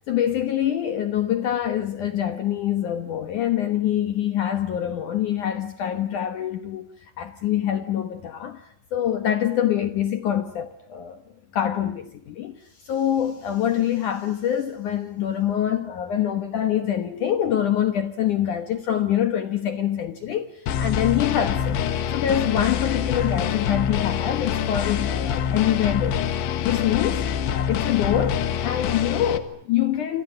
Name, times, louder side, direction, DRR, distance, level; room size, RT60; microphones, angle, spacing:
voice 1, 0.1-6.9 7.2-8.6 8.9-11.2 11.5-21.8 22.1-26.3 26.6-30.2, left 10 dB, 65° left, 2.0 m, -25 dB
sound 1, 20.7-29.4, left 8 dB, 90° left, 4.0 m, -25 dB
27.5 x 27.0 x 7.7 m
omnidirectional pair, 5.1 m